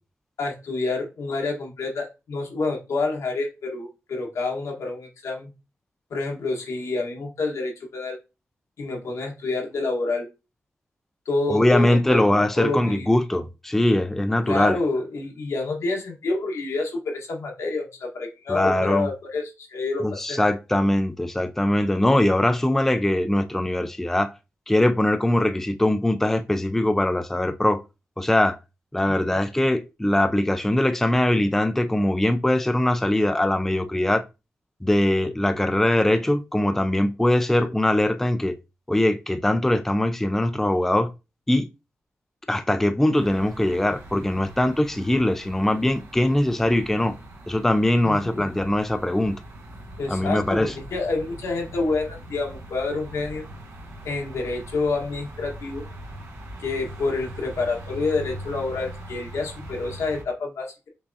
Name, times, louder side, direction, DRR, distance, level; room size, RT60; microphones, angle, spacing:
voice 1, 0.4-5.5 6.1-8.2 8.8-10.3 11.2-12.2 12.6-13.2 14.5-20.4 29.1-29.4 48.0-48.5 50.0-53.4 54.0-55.8 56.6-60.9, left 3 dB, 85° left, 1.4 m, -28 dB
voice 2, 11.5-14.8 18.5-19.1 20.0-24.3 24.7-27.8 28.2-28.6 28.9-34.2 34.8-38.6 38.9-41.1 41.5-41.7 42.5-47.1 47.5-49.4 50.1-50.7, left 1 dB, 5° left, 0.4 m, -21 dB
sound 1, 43.1-60.2, right 1 dB, 80° right, 1.3 m, -41 dB
5.6 x 3.5 x 2.7 m
wide cardioid pair, 105°, 5 cm